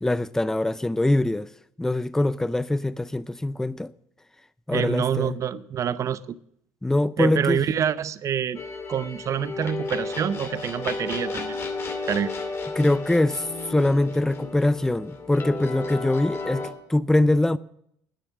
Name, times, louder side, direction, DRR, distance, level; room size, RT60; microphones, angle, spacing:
voice 1, 0.0-1.5 1.8-3.9 4.7-5.3 6.8-7.6 12.8-13.4 13.7-17.6, left 1 dB, 5° left, 0.5 m, -23 dB
voice 2, 4.7-6.3 7.2-8.6 8.9-11.7 12.1-12.3, right 8 dB, 45° right, 0.7 m, -26 dB
sound 1, 8.5-16.7, left 3 dB, 35° left, 2.5 m, -33 dB
10.5 x 9.9 x 7.2 m
supercardioid pair, 80°, 8 cm